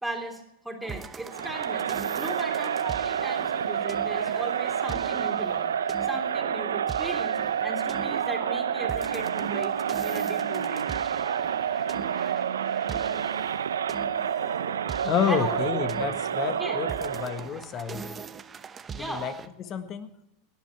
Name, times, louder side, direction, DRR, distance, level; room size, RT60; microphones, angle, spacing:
voice 1, 0.0-1.9 2.2-5.7 6.0-9.7 10.0-10.9 15.3-15.8 16.6-16.8 18.9-19.2, right 1 dB, 5° right, 2 dB, 3.2 m, -37 dB
sound 1, 0.8-19.5, right 6 dB, 25° right, 0.9 m, -42 dB
Crowd, 1.3-17.5, right 8 dB, 85° right, 0.6 m, -29 dB
voice 2, 15.0-18.1 18.9-19.3 19.6-20.1, left 8 dB, 40° left, 10 dB, 1.5 m, -30 dB
17.5 x 11.0 x 4.7 m, 0.82 s
hypercardioid pair, 95°, 0 cm